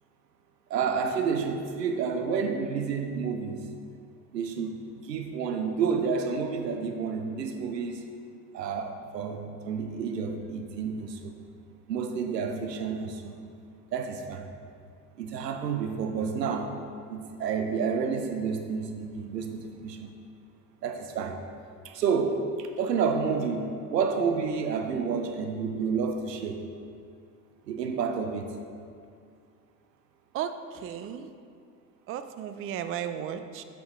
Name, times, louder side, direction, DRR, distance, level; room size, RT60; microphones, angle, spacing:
voice 1, 0.7-3.6 4.3-8.0 8.5-11.3 11.9-13.4 13.9-14.5 15.2-16.7 17.1-20.1 20.8-21.4 21.8-26.6 27.7-28.5, right 5 dB, 90° right, 6 dB, 0.6 m, -30 dB
voice 2, 30.3-31.3 32.1-33.6, right 9 dB, 30° right, 10 dB, 0.4 m, -35 dB
8.0 x 5.1 x 3.7 m, 2.3 s
hypercardioid pair, 60°, 48 cm